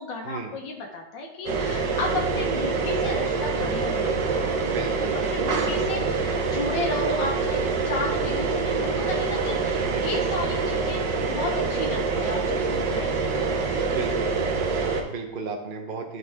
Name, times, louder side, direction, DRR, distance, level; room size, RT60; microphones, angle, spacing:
voice 1, 0.0-4.6 5.2-13.6, left 2 dB, 85° left, 0 dB, 1.7 m, -33 dB
sound 1, 1.5-15.0, right 4 dB, 80° right, 1.6 m, -25 dB
voice 2, 4.6-6.3 6.9-7.3 9.7-10.2 13.9-16.2, right 4 dB, 40° right, 3 dB, 0.8 m, -36 dB
10.5 x 4.6 x 3.4 m, 0.82 s
omnidirectional pair, 1.9 m